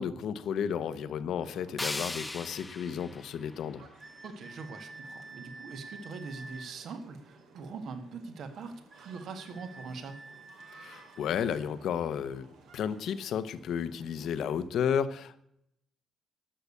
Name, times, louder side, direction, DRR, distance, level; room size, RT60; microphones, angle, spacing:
voice 1, 0.0-3.8 10.8-12.5 12.7-15.4, left 8 dB, 75° left, 13 dB, 0.9 m, -32 dB
sound 1, 1.4-14.7, right 4 dB, 85° right, 2.8 m, -58 dB
sound 2, 1.8-4.8, left 2 dB, 15° left, 0.4 m, -40 dB
sound 3, 4.0-6.8 8.9-11.5, right 3 dB, 25° right, 2.1 m, -49 dB
voice 2, 4.2-10.2, right 4 dB, 65° right, 8 dB, 1.7 m, -42 dB
12.5 x 6.8 x 8.4 m, 0.76 s
cardioid pair, 90°, 0 cm